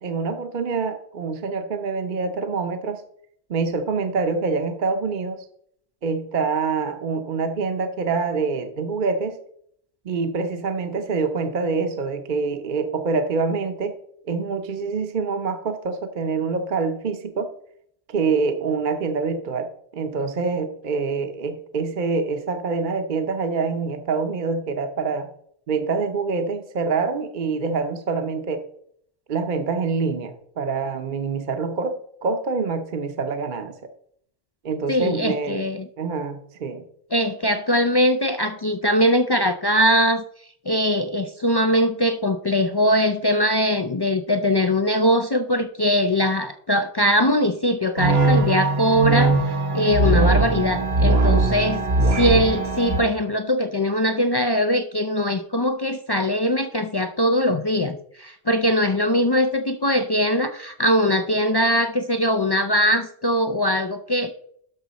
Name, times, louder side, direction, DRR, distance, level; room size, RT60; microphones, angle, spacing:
voice 1, 0.0-3.0 3.5-5.4 6.0-9.4 10.0-14.0 14.2-17.5 18.1-19.7 19.9-25.3 25.7-28.6 29.3-32.0 32.2-33.7 34.6-35.6 36.0-36.8, right 4 dB, 50° right, 7 dB, 0.8 m, -25 dB
voice 2, 34.9-35.9 37.1-40.2 40.7-64.3, equal, 45° left, 8 dB, 0.3 m, -21 dB
sound 1, 48.0-53.0, right 3 dB, 70° right, 1.4 m, -20 dB
12.0 x 5.9 x 4.1 m, 0.67 s
omnidirectional pair, 1.1 m